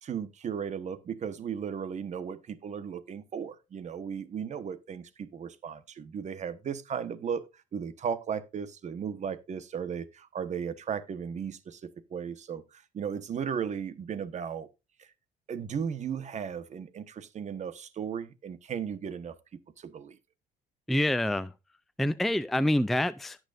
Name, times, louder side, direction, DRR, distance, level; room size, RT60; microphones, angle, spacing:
voice 1, 0.0-14.7 15.0-15.1 15.5-19.4 19.8-20.2, right 7 dB, 45° right, 1.2 m, -36 dB
voice 2, 20.9-21.5 22.0-23.4, left 1 dB, ahead, 0.4 m, -26 dB
17.0 x 6.2 x 2.5 m
cardioid pair, 110°, 17 cm